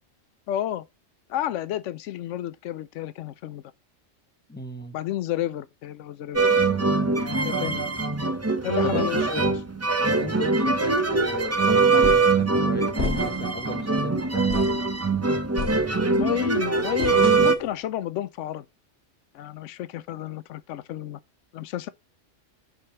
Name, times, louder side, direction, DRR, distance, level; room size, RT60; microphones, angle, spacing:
voice 1, 0.5-0.8 1.3-3.6 4.9-6.5 7.1-7.9 8.6-9.5 16.1-18.7 19.3-21.2 21.5-21.9, left 12 dB, 80° left, 0.9 m, -31 dB
voice 2, 4.5-4.9 8.8-9.5 10.2-14.8, left 1 dB, 10° left, 1.0 m, -35 dB
sound 1, 6.3-17.5, right 3 dB, 15° right, 0.6 m, -22 dB
sound 2, 12.0-12.4 13.0-13.6 14.0-14.1 14.5-14.9 15.6-16.3 17.0-17.7, left 4 dB, 60° left, 1.6 m, -32 dB
5.6 x 5.3 x 5.6 m
omnidirectional pair, 1.2 m